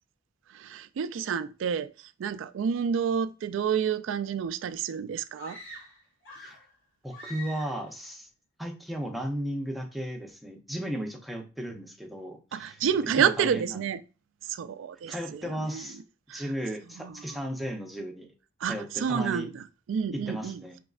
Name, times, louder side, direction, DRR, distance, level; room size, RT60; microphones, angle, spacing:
voice 1, 0.5-1.9 2.2-5.6 12.5-14.0 14.5-15.8 16.3-16.4 17.0-17.4 18.6-20.6, right 7 dB, 80° right, 0.3 m, -29 dB
sound 1, 5.4-6.7 7.1-7.9, left 1 dB, 70° left, 1.5 m, -45 dB
voice 2, 7.0-8.3 8.6-13.9 15.1-16.0 16.3-18.3 18.7-19.5 20.1-20.8, equal, ahead, 0.6 m, -35 dB
5.1 x 3.0 x 2.4 m
head